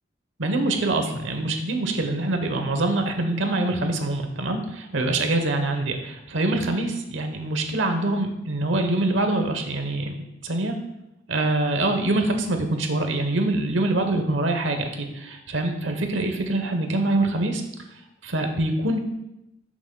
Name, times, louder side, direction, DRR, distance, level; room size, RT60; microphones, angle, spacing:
voice 1, 0.4-10.8 11.3-17.6 18.2-19.0, right 2 dB, 80° right, 5 dB, 1.0 m, -24 dB
11.0 x 6.1 x 2.2 m, 0.88 s
head